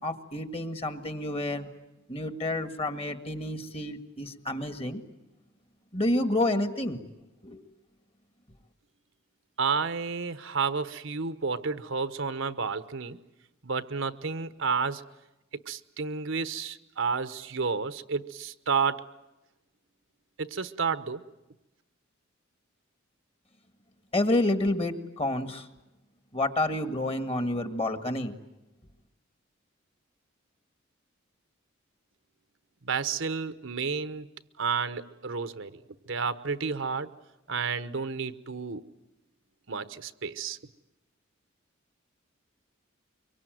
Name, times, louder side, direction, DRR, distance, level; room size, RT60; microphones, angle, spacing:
voice 1, 0.0-1.7 2.1-5.0 5.9-7.0 7.4-7.6 24.1-25.7 26.3-28.3, left 1 dB, 30° left, 9 dB, 1.8 m, -29 dB
voice 2, 9.6-13.2 13.6-15.0 15.7-19.0 20.4-21.2 32.8-34.3 34.6-35.7 36.1-37.1 37.5-38.8 39.7-40.6, right 5 dB, 65° right, 12 dB, 1.0 m, -31 dB
24.0 x 24.0 x 9.2 m, 1.0 s
head